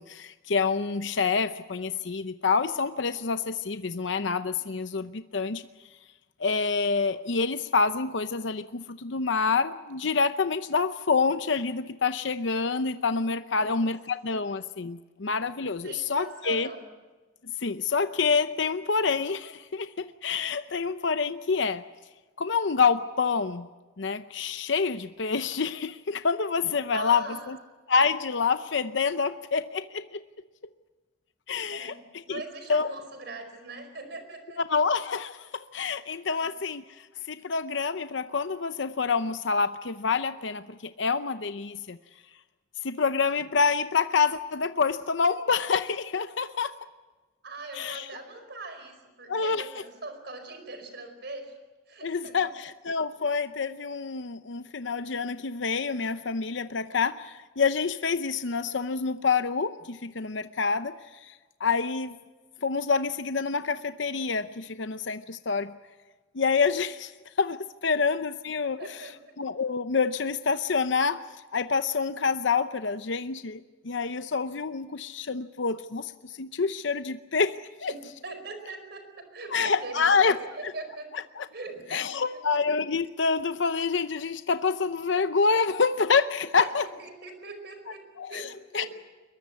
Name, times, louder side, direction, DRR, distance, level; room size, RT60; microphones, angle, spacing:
voice 1, 0.0-5.6 6.4-16.7 17.6-21.8 22.4-23.7 24.0-27.6 27.9-30.2 31.5-31.9 32.3-32.4 32.7-32.9 34.7-36.8 37.3-42.0 42.8-46.8 47.7-48.1 49.3-49.7 52.0-62.1 62.6-65.7 66.3-67.1 67.4-69.1 69.4-71.2 71.5-77.9 79.5-80.4 81.4-81.5 81.9-86.9 88.2-88.9, left 5 dB, 70° left, 11 dB, 0.7 m, -27 dB
voice 2, 13.6-13.9 15.8-16.9 26.9-27.5 31.7-34.6 36.4-36.5 47.4-51.5 51.9-52.5 67.9-68.0 68.8-69.3 77.9-81.1 81.5-82.4 86.8-88.0 88.3-88.9, right 3 dB, 55° right, 7 dB, 4.9 m, -41 dB
23.0 x 21.5 x 8.3 m, 1.3 s
head